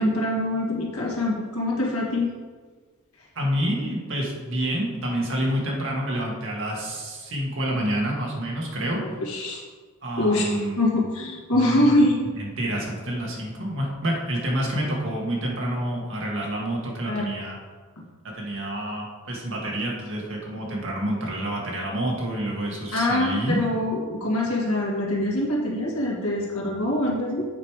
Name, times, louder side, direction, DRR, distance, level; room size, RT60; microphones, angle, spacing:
voice 1, 0.0-2.3 8.9-9.6 10.2-12.2 17.1-17.5 18.0-18.1 22.9-27.5, left 1 dB, 80° left, -2 dB, 1.9 m, -24 dB
voice 2, 3.4-9.0 10.0-10.8 11.5-11.9 12.4-17.6 18.4-23.6, right 1 dB, 55° right, -2 dB, 1.8 m, -28 dB
8.1 x 5.2 x 4.8 m, 1.5 s
head